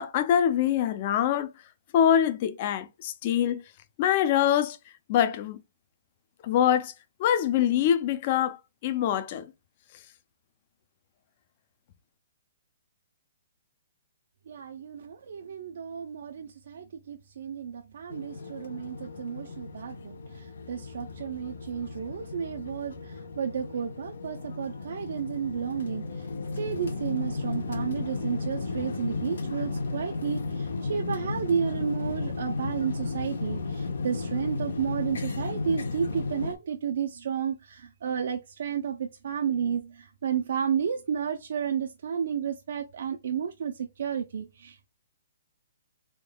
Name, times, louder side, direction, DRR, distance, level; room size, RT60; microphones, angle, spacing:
voice 1, 0.0-1.5 1.9-3.6 4.0-4.8 5.1-5.6 6.4-6.9 7.2-9.5, left 10 dB, 30° left, 0.5 m, -24 dB
voice 2, 14.5-26.3 26.5-44.9, right 7 dB, 60° right, 0.5 m, -32 dB
sound 1, 18.1-36.5, left 3 dB, 85° left, 0.9 m, -34 dB
3.8 x 3.6 x 2.2 m
hypercardioid pair, 170°, 0 cm